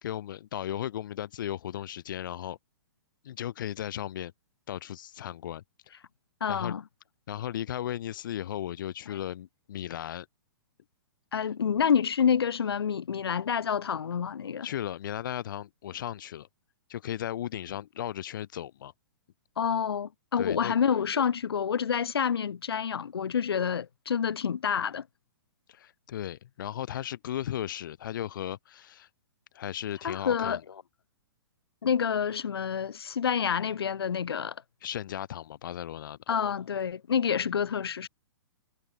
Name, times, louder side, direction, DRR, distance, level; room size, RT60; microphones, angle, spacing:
voice 1, 0.0-2.6 3.2-4.3 4.7-5.6 6.5-6.7 7.3-10.3 14.6-16.5 16.9-18.9 20.4-20.8 25.7-29.1 29.5-30.6 34.8-36.2, left 11 dB, 55° left, 4.9 m, -36 dB
voice 2, 6.4-6.8 9.1-9.2 11.3-14.7 19.6-25.0 30.0-30.6 31.8-34.6 36.3-38.1, left 7 dB, 85° left, 3.6 m, -28 dB
hypercardioid pair, 155°, 13 cm